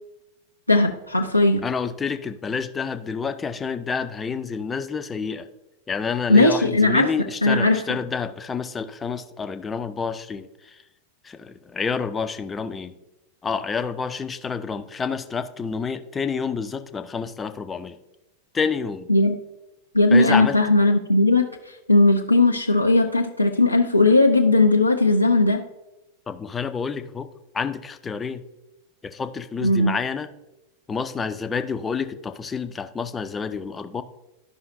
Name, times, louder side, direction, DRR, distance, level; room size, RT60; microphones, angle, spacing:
voice 1, 0.7-1.6 6.3-7.1 7.4-7.8 19.1-19.4 19.9-25.6 29.6-29.9, left 2 dB, 90° left, 2 dB, 0.4 m, -18 dB
voice 2, 1.6-5.5 5.9-10.8 11.2-13.0 13.4-18.0 18.5-19.1 20.1-20.6 26.3-28.4 29.0-30.3 30.9-34.0, left 5 dB, 15° left, 10 dB, 0.5 m, -29 dB
12.5 x 5.5 x 2.6 m, 0.95 s
figure-of-eight pair, 90°, 0 cm